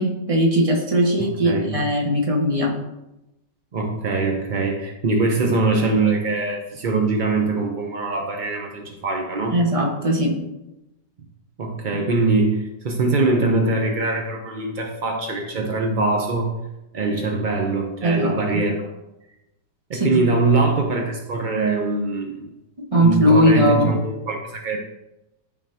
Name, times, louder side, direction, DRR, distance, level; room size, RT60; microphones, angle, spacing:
voice 1, 0.0-2.7 9.5-10.4 18.0-18.3 19.9-20.3 22.9-23.9, equal, 20° right, -1 dB, 1.1 m, -19 dB
voice 2, 1.2-1.9 3.7-9.6 11.6-16.5 16.9-18.8 19.9-22.4 23.0-24.8, right 3 dB, 65° right, 2 dB, 0.4 m, -22 dB
12.5 x 4.3 x 2.8 m, 0.95 s
omnidirectional pair, 1.9 m